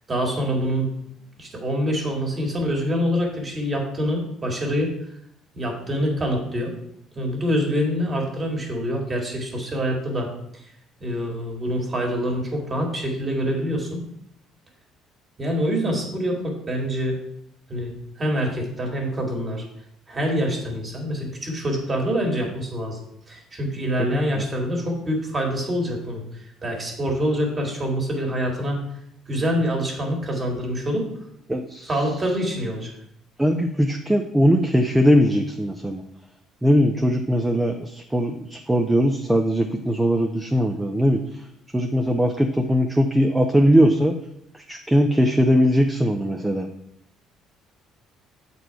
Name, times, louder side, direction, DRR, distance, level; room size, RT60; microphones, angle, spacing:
voice 1, 0.1-0.9 1.4-4.9 5.5-6.7 7.1-10.3 11.0-14.0 15.4-17.2 17.7-19.6 20.1-23.0 23.3-28.8 29.3-31.1 31.9-32.9, equal, 25° right, 0 dB, 1.8 m, -25 dB
voice 2, 31.5-31.9 33.4-36.0 36.6-41.2 41.7-44.1 44.5-46.7, equal, 5° right, 3 dB, 0.4 m, -20 dB
8.0 x 4.2 x 4.6 m, 0.72 s
cardioid pair, 150°, 0 cm